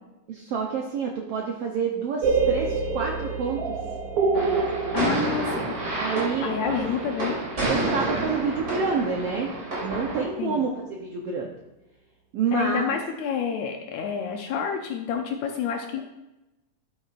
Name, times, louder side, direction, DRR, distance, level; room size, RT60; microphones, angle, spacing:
voice 1, 0.3-3.6 5.9-6.5 7.0-7.1 7.7-9.5 9.8-10.7 11.0-11.5 12.3-12.8, right 5 dB, 80° right, 0 dB, 1.4 m, -28 dB
sound 1, 2.2-8.0, right 4 dB, 60° right, 1.6 m, -27 dB
sound 2, 4.3-10.2, right 2 dB, 30° right, 3.4 m, -29 dB
voice 2, 4.9-5.7 6.4-7.4 10.4-10.7 12.5-16.0, left 7 dB, 75° left, 3 dB, 1.8 m, -28 dB
11.0 x 8.8 x 2.5 m, 0.98 s
omnidirectional pair, 3.8 m